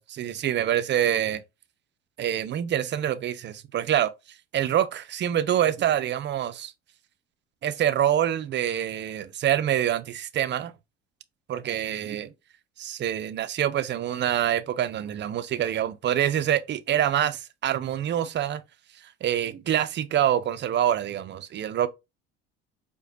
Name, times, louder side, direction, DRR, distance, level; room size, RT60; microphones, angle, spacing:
voice 1, 0.0-1.4 2.2-4.1 4.5-6.7 7.6-10.7 11.5-12.3 12.8-18.6 19.2-21.9, right 10 dB, 35° right, 0.5 m, -26 dB
4.8 x 2.3 x 2.7 m
hypercardioid pair, 70°, 31 cm